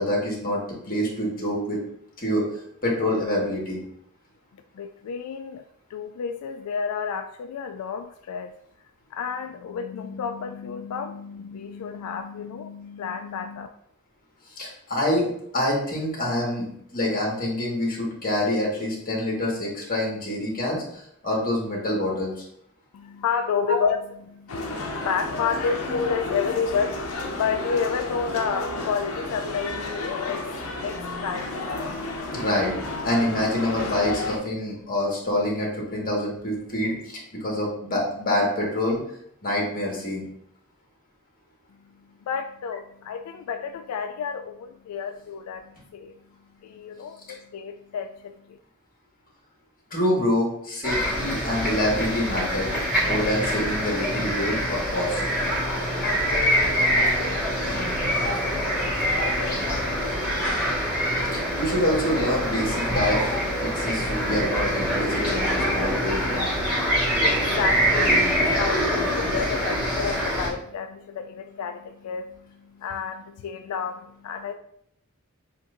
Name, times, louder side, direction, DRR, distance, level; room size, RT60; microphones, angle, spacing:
voice 1, 0.0-1.8 2.2-3.8 14.5-15.3 15.5-16.7 16.9-22.4 23.7-23.8 32.3-32.7 33.0-39.0 39.4-40.2 49.9-52.7 53.0-55.2 61.3-63.3 63.6-66.5, left 1 dB, 40° left, -2 dB, 1.5 m, -26 dB
voice 2, 4.8-5.6 5.9-8.5 9.1-13.7 22.9-31.8 42.3-46.1 46.6-48.6 55.7-60.4 67.0-74.5, left 6 dB, 90° left, 6 dB, 0.3 m, -31 dB
sound 1, 24.5-34.4, left 2 dB, 70° left, 0.8 m, -32 dB
sound 2, 50.8-70.5, equal, 5° right, 1.5 m, -25 dB
7.4 x 2.6 x 2.5 m, 0.70 s
head